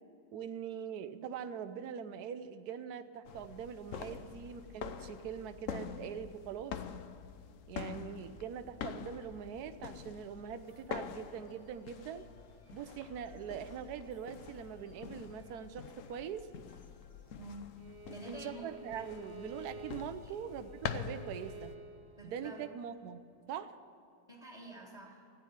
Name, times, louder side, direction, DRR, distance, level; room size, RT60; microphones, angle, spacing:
voice 1, 0.3-6.8 7.7-12.3 12.7-16.5 18.2-21.7 22.2-23.2 23.5-23.7, right 8 dB, 60° right, 10 dB, 1.2 m, -43 dB
sound 1, 3.3-21.8, left 7 dB, 60° left, 0.8 m, -46 dB
sound 2, 10.3-17.4, left 2 dB, 30° left, 2.3 m, -67 dB
voice 2, 17.3-17.7 18.1-18.7 20.2-20.3 22.2-22.6 24.3-25.3, right 1 dB, 15° left, -2 dB, 2.4 m, -48 dB
Bowed string instrument, 17.8-22.8, right 3 dB, 40° right, 0.9 m, -51 dB
15.0 x 9.4 x 8.7 m, 2.7 s
omnidirectional pair, 2.1 m